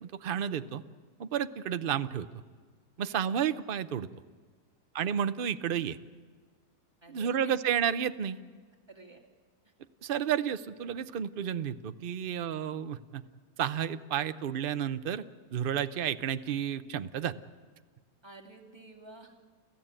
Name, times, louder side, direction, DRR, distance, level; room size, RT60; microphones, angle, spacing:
voice 1, 0.0-0.8 1.2-2.3 3.0-4.1 4.9-6.0 7.1-8.4 10.0-13.2 13.6-15.2 15.5-17.3, right 9 dB, 50° right, 12 dB, 0.7 m, -31 dB
voice 2, 7.0-7.5 8.9-9.2 9.6-9.7 18.2-19.4, right 2 dB, 15° right, 0 dB, 2.4 m, -52 dB
30.0 x 14.5 x 8.9 m, 1.5 s
omnidirectional pair, 1.7 m